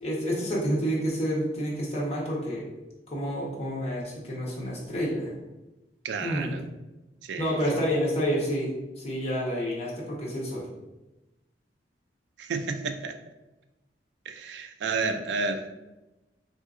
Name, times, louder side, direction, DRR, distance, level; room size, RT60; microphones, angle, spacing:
voice 1, 0.0-2.6 3.1-5.3 6.2-6.6 7.4-10.7, equal, 35° left, -5 dB, 0.9 m, -29 dB
voice 2, 6.0-6.6 7.2-7.6 12.4-13.1 14.3-15.7, right 4 dB, 70° right, 7 dB, 0.3 m, -31 dB
3.5 x 2.7 x 2.5 m, 1.0 s
head